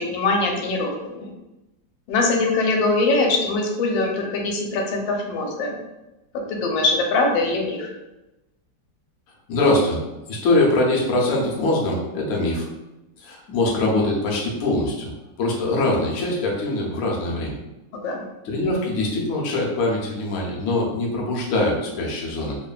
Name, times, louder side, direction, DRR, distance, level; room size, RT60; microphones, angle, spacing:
voice 1, 0.0-1.3 2.1-5.8 6.5-7.9 17.9-18.2, left 3 dB, 90° left, 1 dB, 1.3 m, -22 dB
voice 2, 9.5-10.0 10.3-12.7 13.2-15.1 15.4-17.6 18.4-22.6, left 2 dB, 65° left, -3 dB, 0.9 m, -22 dB
3.0 x 2.1 x 2.3 m, 0.98 s
omnidirectional pair, 2.0 m